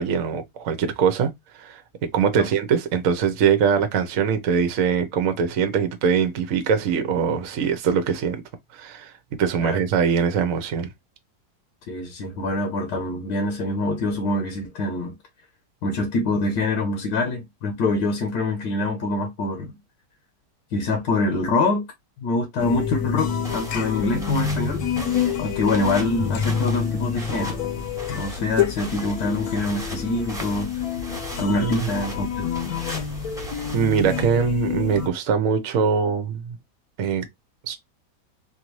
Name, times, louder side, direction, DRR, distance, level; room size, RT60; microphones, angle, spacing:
voice 1, 0.0-8.4 8.7-10.9 31.6-31.7 33.7-36.6 37.0-37.2 37.6-37.7, right 6 dB, 60° right, 1.0 m, -22 dB
voice 2, 11.9-15.1 15.8-19.8 20.7-21.9 22.2-24.8 25.4-27.6 28.1-30.7 31.1-32.4, left 2 dB, 80° left, 1.6 m, -25 dB
sound 1, 22.6-35.1, left 7 dB, 65° left, 1.2 m, -28 dB
sound 2, 23.2-34.2, right 1 dB, ahead, 0.9 m, -38 dB
4.4 x 2.6 x 3.0 m
omnidirectional pair, 1.8 m